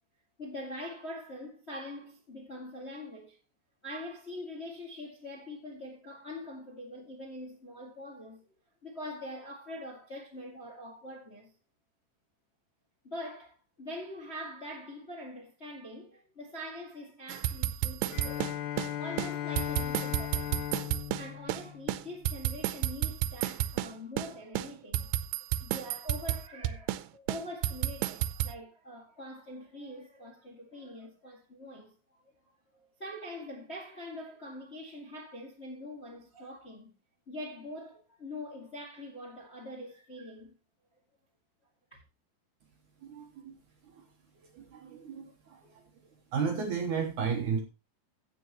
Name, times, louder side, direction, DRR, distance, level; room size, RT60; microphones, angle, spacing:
voice 1, 0.4-3.4 3.8-8.4 8.8-11.5 13.0-18.7 19.0-20.6 21.2-25.1 25.6-32.2 32.7-36.9 37.3-40.6 41.9-42.0, left 1 dB, 30° left, 1.2 m, -44 dB
sound 1, 17.3-18.9 19.2-19.3 19.6-21.6 21.9-23.9 24.2-24.3 24.6-27.0 27.3-28.5, right 13 dB, 85° right, 2.7 m, -31 dB
Bowed string instrument, 18.1-22.5, left 12 dB, 85° left, 3.1 m, -37 dB
voice 2, 43.0-43.5 43.9-44.0 44.5-45.7 46.3-47.6, right 6 dB, 65° right, 2.1 m, -33 dB
16.0 x 7.0 x 3.0 m
omnidirectional pair, 4.7 m